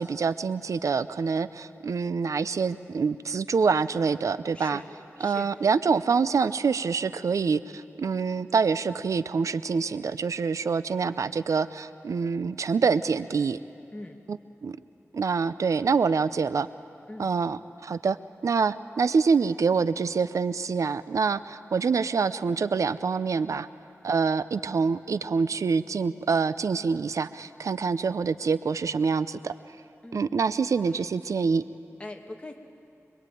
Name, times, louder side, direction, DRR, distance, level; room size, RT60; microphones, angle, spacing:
voice 1, 0.0-4.8 5.2-13.6 14.3-14.4 14.6-14.8 15.1-16.7 17.2-18.2 18.4-23.7 24.0-29.5 30.1-31.6, right 5 dB, 90° right, 14 dB, 0.6 m, -26 dB
voice 2, 4.5-4.9 5.2-5.5 13.9-14.2 17.1-17.3 30.0-30.3 30.8-31.0 32.0-32.5, left 2 dB, 20° left, 3 dB, 2.2 m, -41 dB
25.0 x 23.0 x 9.2 m, 2.7 s
wide cardioid pair, 90°, 5 cm